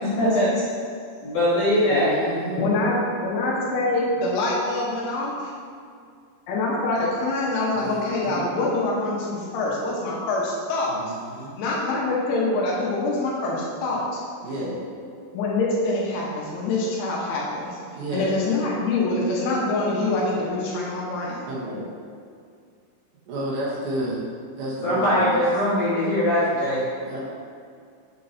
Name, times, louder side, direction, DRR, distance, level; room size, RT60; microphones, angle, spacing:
voice 1, 0.0-0.6 1.2-2.1 24.8-26.8, left 1 dB, 50° left, -10 dB, 2.6 m, -21 dB
voice 2, 1.9-2.7 7.7-8.5 10.9-11.6 14.4-14.8 18.0-18.4 21.5-21.9 23.3-24.3 24.6-25.4 27.0-27.2, right 1 dB, 70° right, -6 dB, 3.0 m, -31 dB
voice 3, 2.6-5.5 6.5-10.9 11.6-14.2 15.3-17.8 18.1-21.4, left 2 dB, 80° left, -4 dB, 3.2 m, -25 dB
7.7 x 4.6 x 4.1 m, 2.2 s
omnidirectional pair, 5.7 m